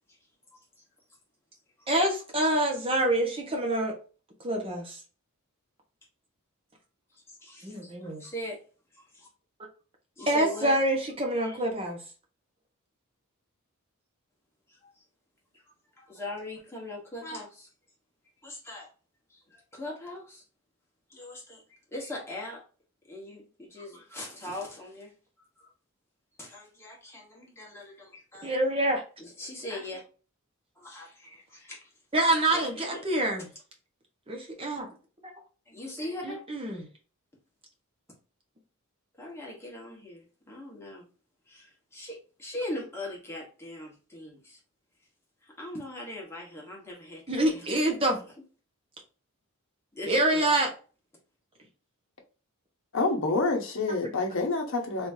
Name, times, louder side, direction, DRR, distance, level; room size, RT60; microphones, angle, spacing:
voice 1, 1.9-3.9 4.4-5.0 7.6-8.2 10.3-12.0 28.4-29.0 32.1-33.5 34.3-34.9 36.2-36.9 47.3-48.2 50.1-50.7, right 1 dB, 25° right, 1.0 m, -26 dB
voice 2, 7.3-7.9 8.2-8.6 8.9-9.3 10.2-10.8 11.4-11.6 14.7-14.9 16.0-17.7 18.4-18.9 19.3-20.4 21.1-22.6 23.1-25.1 25.6-25.7 26.4-28.6 29.2-30.0 30.8-31.9 32.4-33.0 35.7-36.4 39.2-41.0 41.5-44.6 45.4-47.7 49.9-50.5, left 1 dB, 10° left, 1.3 m, -40 dB
voice 3, 52.9-55.1, left 3 dB, 60° left, 0.8 m, -27 dB
3.5 x 3.1 x 2.7 m
head